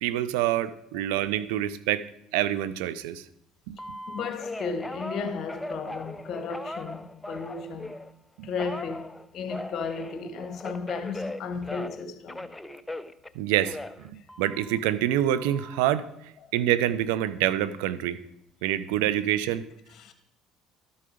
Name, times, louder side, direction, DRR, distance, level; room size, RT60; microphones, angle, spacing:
voice 1, 0.0-2.1 2.3-3.2 3.7-3.8 8.4-8.5 13.4-16.1 16.5-18.2 18.6-19.6, right 12 dB, 90° right, 0.4 m, -26 dB
Telephone, 3.8-8.1 8.6-12.0 12.3-14.8 15.3-15.8, left 1 dB, 10° left, 0.4 m, -39 dB
voice 2, 4.1-8.0 8.4-12.5 19.9-20.1, left 5 dB, 55° left, 1.2 m, -34 dB
12.0 x 4.7 x 5.0 m
supercardioid pair, 90°, 0 cm